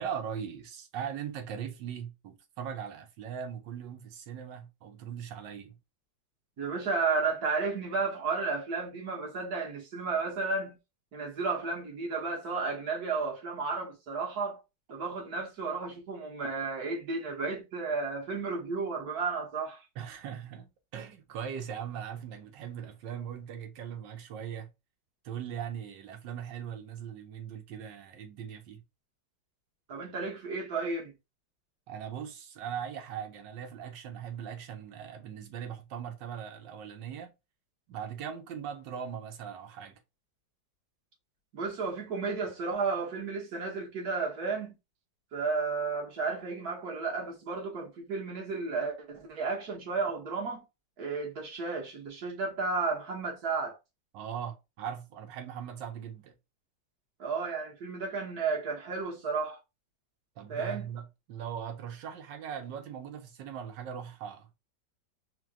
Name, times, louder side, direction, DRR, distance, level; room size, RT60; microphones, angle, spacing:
voice 1, 0.0-5.8 20.0-24.7 25.2-28.8 31.9-37.3 37.9-40.0 54.1-56.3 60.4-64.5, right 8 dB, 75° right, 1.5 m, -40 dB
voice 2, 6.6-10.7 11.1-14.6 14.9-19.8 29.9-31.1 41.5-44.7 45.3-50.6 51.0-53.8 57.2-59.6 60.5-60.8, right 4 dB, 55° right, 1.7 m, -33 dB
4.5 x 2.2 x 3.7 m
omnidirectional pair, 2.1 m